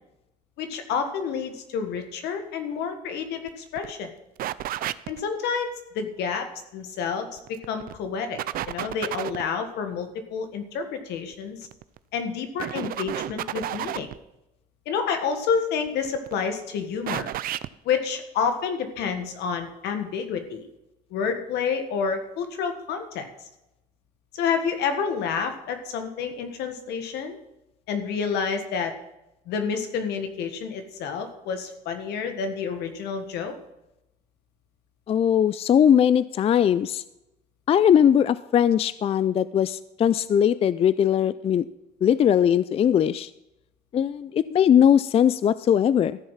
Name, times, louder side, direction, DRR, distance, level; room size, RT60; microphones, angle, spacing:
voice 1, 0.6-4.1 5.1-8.4 8.7-11.6 12.1-14.1 14.9-17.3 17.9-20.7 21.1-23.3 24.3-27.4 27.9-28.9 29.5-33.5, left 6 dB, 80° left, 7 dB, 1.6 m, -29 dB
sound 1, 3.5-3.6 3.8-3.9 4.4-5.2 7.4-7.9 8.4-9.5 11.6-12.0 12.6-14.2 15.9-16.3 17.1-17.7, right 13 dB, 60° right, 0.5 m, -31 dB
voice 2, 35.1-37.0 37.7-41.6 42.0-43.3 43.9-46.2, left 9 dB, 35° left, 16 dB, 0.4 m, -20 dB
14.0 x 7.1 x 5.8 m, 0.90 s
cardioid pair, 110°, 17 cm